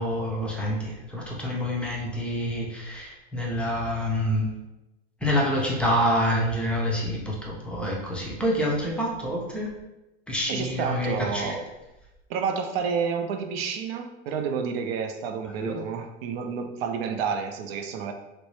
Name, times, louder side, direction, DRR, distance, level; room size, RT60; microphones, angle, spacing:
voice 1, 0.0-4.5 5.2-9.7 10.3-11.6 15.5-15.8, equal, 5° left, -3 dB, 0.4 m, -27 dB
voice 2, 10.5-11.7 12.3-18.1, right 6 dB, 60° right, 6 dB, 0.5 m, -30 dB
3.1 x 2.6 x 3.1 m, 0.98 s
supercardioid pair, 135°, 34 cm